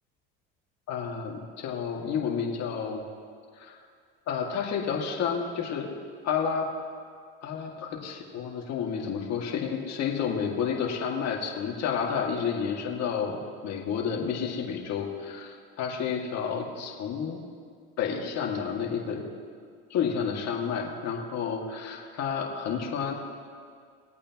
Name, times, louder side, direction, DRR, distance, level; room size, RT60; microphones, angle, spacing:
voice 1, 0.9-3.0 3.6-3.8 4.3-5.9 6.2-6.7 7.4-17.4 18.0-19.2 19.9-23.1, left 7 dB, 60° left, -1 dB, 2.2 m, -30 dB
22.0 x 8.5 x 3.0 m, 2.1 s
supercardioid pair, 85°, 29 cm